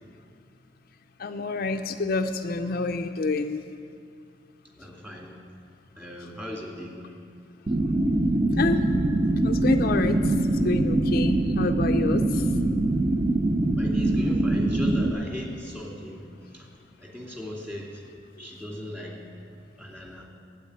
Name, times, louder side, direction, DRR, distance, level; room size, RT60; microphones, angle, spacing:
voice 1, 1.2-3.7 8.6-8.8 9.4-12.4, left 3 dB, 55° left, 6 dB, 0.5 m, -28 dB
voice 2, 4.8-5.4 5.9-7.2 13.8-18.1 18.4-19.2 19.8-20.3, left 1 dB, 10° right, -1 dB, 2.3 m, -38 dB
sound 1, 7.7-15.1, right 2 dB, 30° right, 0.7 m, -23 dB
12.5 x 8.5 x 9.6 m, 2.4 s
head